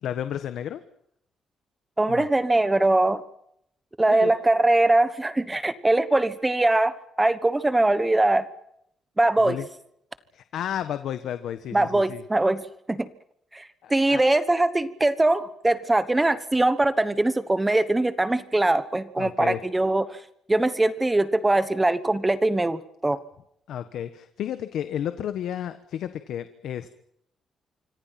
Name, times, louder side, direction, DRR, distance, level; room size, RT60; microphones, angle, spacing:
voice 1, 0.0-0.8 2.1-2.3 4.1-4.3 9.4-9.7 10.3-12.2 13.8-14.2 19.2-19.6 23.7-26.9, left 10 dB, 80° left, 10 dB, 1.3 m, -32 dB
voice 2, 2.0-3.2 4.0-8.5 9.2-9.6 11.7-13.1 13.5-20.2 20.5-23.2, right 2 dB, 10° right, 13 dB, 1.2 m, -22 dB
26.0 x 25.5 x 5.9 m, 0.73 s
cardioid pair, 140°, 0 cm